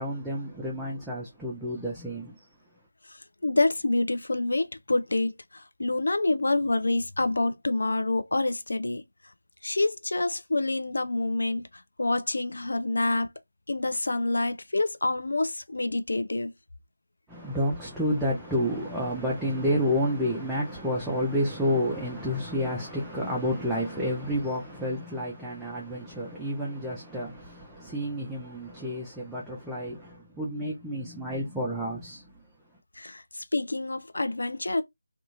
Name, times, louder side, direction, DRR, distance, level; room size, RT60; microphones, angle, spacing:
voice 1, 0.0-2.4 17.3-32.2, equal, 5° right, 0.4 m, -30 dB
voice 2, 3.1-9.0 9.6-13.3 13.7-16.5 33.0-34.8, left 2 dB, 60° left, 0.4 m, -27 dB
2.6 x 2.4 x 2.5 m
figure-of-eight pair, 160°, 0 cm